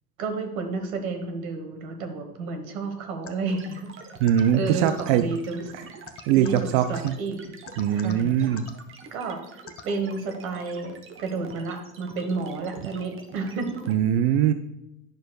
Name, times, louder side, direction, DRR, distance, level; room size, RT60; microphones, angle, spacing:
voice 1, 0.2-3.9 4.5-5.6 6.3-7.4 7.9-8.6 9.1-10.9 11.2-13.8, right 4 dB, 70° right, 6 dB, 1.3 m, -31 dB
sound 1, 3.3-3.4 4.3-4.4 4.9-5.0 6.1-6.6 7.0-7.1 7.7-8.1 8.6-8.7 9.7-9.8, left 9 dB, 30° left, 0.6 m, -40 dB
sound 2, 3.5-13.9, right 4 dB, 30° right, 1.0 m, -45 dB
voice 2, 4.2-5.2 6.2-7.1 7.8-8.7 13.9-14.5, right 10 dB, 50° right, 10 dB, 0.5 m, -22 dB
10.5 x 6.3 x 2.2 m, 0.92 s
hypercardioid pair, 70°, 43 cm